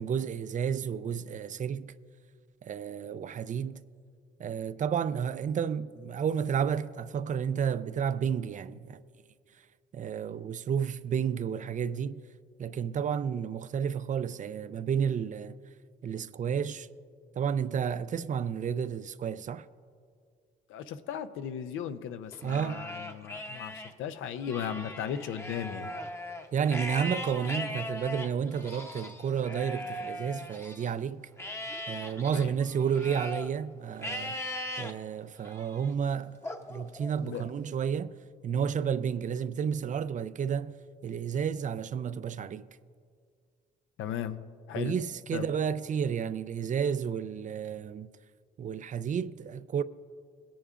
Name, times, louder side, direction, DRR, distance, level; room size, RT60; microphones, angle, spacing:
voice 1, 0.0-1.9 2.6-3.8 4.4-9.0 9.9-12.2 12.6-15.6 16.0-16.9 17.4-19.7 22.4-22.8 26.5-31.3 31.9-36.4 36.7-38.2 38.4-40.8 41.0-42.7 44.7-48.1 48.6-49.8, right 7 dB, 40° right, 0.4 m, -31 dB
voice 2, 20.7-25.9 32.3-32.6 37.2-37.4 44.0-44.4 44.7-44.9 45.3-45.5, left 9 dB, 90° left, 0.6 m, -36 dB
Livestock farm animals working animals, 22.3-23.9 24.4-30.9 31.4-33.5 34.0-34.9 35.4-35.9 36.4-37.5, left 1 dB, 15° left, 0.7 m, -39 dB
20.0 x 10.0 x 2.4 m
cardioid pair, 90°, 20 cm